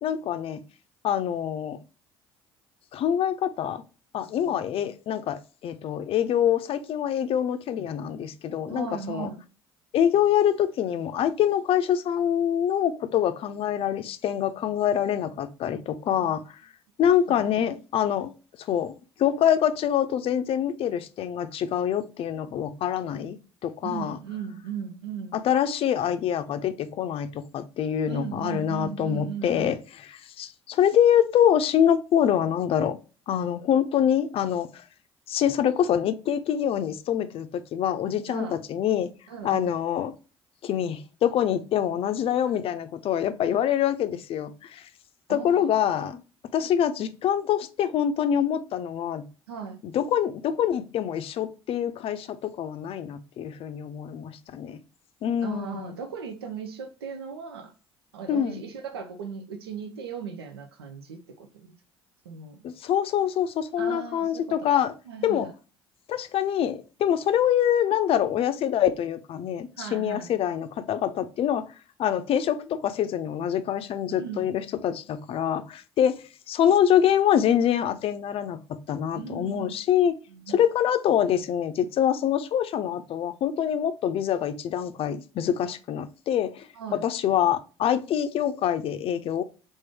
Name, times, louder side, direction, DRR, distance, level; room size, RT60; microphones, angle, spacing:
voice 1, 0.0-0.6 1.0-1.8 2.9-3.8 4.1-9.3 9.9-16.4 17.0-18.3 18.6-18.9 19.2-24.2 25.4-29.8 30.2-33.0 33.3-34.8 35.3-39.1 39.4-40.1 40.6-44.9 45.3-46.2 46.5-49.2 49.8-54.8 55.2-55.9 58.3-58.6 62.6-64.9 65.2-65.5 66.1-71.6 72.0-76.2 76.5-78.6 78.9-80.1 80.5-89.4, left 9 dB, 45° left, 0.5 m, -25 dB
voice 2, 8.7-9.4 16.1-16.4 17.3-17.6 23.8-25.4 28.0-29.7 38.3-38.6 39.3-39.7 42.5-42.6 45.3-45.7 49.5-49.8 55.4-57.7 58.1-61.7 62.2-62.7 63.8-64.4 64.8-65.5 69.8-70.3 74.1-74.5 79.1-79.7 80.3-80.6 86.7-87.0, right 7 dB, 80° right, 0.5 m, -37 dB
3.6 x 2.6 x 3.4 m
figure-of-eight pair, 55°, 13 cm